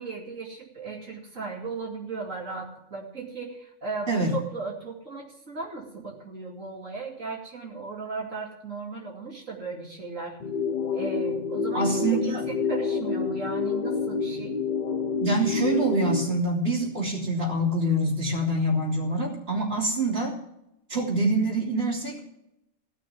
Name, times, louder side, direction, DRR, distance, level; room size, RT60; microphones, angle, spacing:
voice 1, 0.0-10.4 10.9-12.4 12.7-14.6, right 4 dB, 85° right, -2 dB, 3.2 m, -36 dB
sound 1, 10.4-16.4, left 5 dB, 45° left, 0.8 m, -28 dB
voice 2, 11.7-12.4 15.2-20.3 20.9-22.3, right 1 dB, 50° right, -1 dB, 3.6 m, -25 dB
17.0 x 6.4 x 9.7 m, 0.81 s
omnidirectional pair, 1.3 m